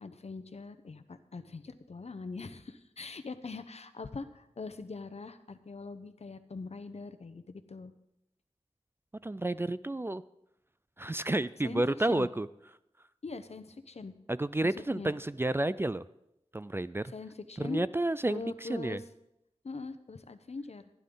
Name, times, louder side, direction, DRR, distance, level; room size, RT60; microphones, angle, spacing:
voice 1, 0.0-7.9 11.6-11.8 12.1-12.3 13.2-14.1 14.8-15.1 17.1-17.9 18.3-19.0 19.6-20.9, left 4 dB, 65° left, 11 dB, 0.8 m, -42 dB
voice 2, 9.2-10.2 11.0-12.5 14.3-16.1 16.5-17.1 17.6-19.0, right 2 dB, 20° right, 16 dB, 0.3 m, -31 dB
15.5 x 10.5 x 3.9 m, 0.85 s
wide cardioid pair, 70°, 12 cm